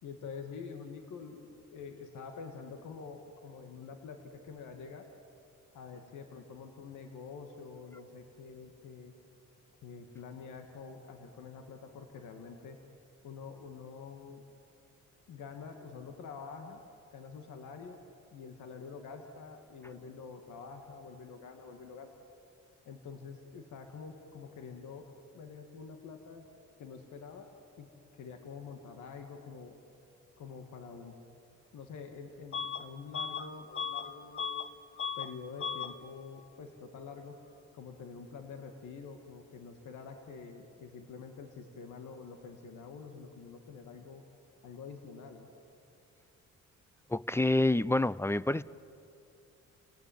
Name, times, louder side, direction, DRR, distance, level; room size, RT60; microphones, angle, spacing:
voice 1, 0.0-5.0 5.7-9.1 9.8-12.8 13.2-14.4 15.3-16.8 17.1-18.0 18.3-22.1 22.9-25.1 25.3-26.5 26.8-27.5 27.8-27.9 28.1-29.8 30.4-31.1 31.7-34.7 35.2-37.4 37.7-44.2 44.6-45.5, left 5 dB, 75° left, 4 dB, 2.1 m, -47 dB
Bus / Alarm, 32.5-32.8 33.1-34.7 35.0-35.3 35.6-35.9, left 6 dB, 45° left, 1.3 m, -36 dB
voice 2, 47.1-48.6, left 2 dB, 10° left, 18 dB, 0.5 m, -27 dB
29.5 x 18.0 x 9.3 m, 2.7 s
cardioid pair, 90°, 30 cm